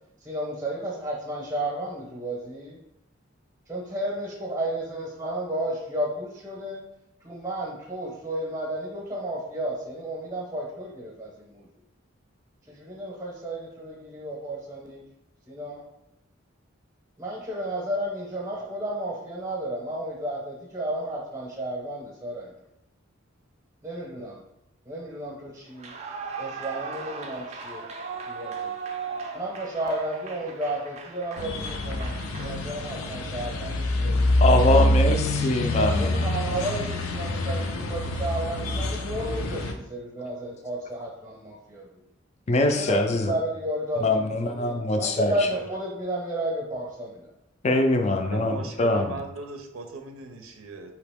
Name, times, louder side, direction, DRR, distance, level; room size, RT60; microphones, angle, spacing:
voice 1, 0.2-2.8 3.7-6.8 7.2-11.7 12.7-15.0 15.5-15.8 17.2-22.5 23.8-24.4 24.8-25.9 26.4-27.9 28.3-28.7 29.3-34.9 35.7-41.9 42.8-47.3, right 1 dB, 15° right, -3 dB, 0.7 m, -32 dB
Clapping / Cheering / Applause, 25.7-33.1, right 5 dB, 30° right, 0.4 m, -38 dB
sound 1, 31.4-39.7, left 1 dB, 90° left, 0.5 m, -26 dB
voice 2, 34.4-36.2 42.5-43.3 44.0-45.3 47.6-49.1, left 2 dB, 30° left, 5 dB, 0.4 m, -23 dB
voice 3, 48.3-50.9, right 3 dB, 85° right, 5 dB, 0.5 m, -37 dB
4.8 x 2.9 x 3.4 m, 0.83 s
head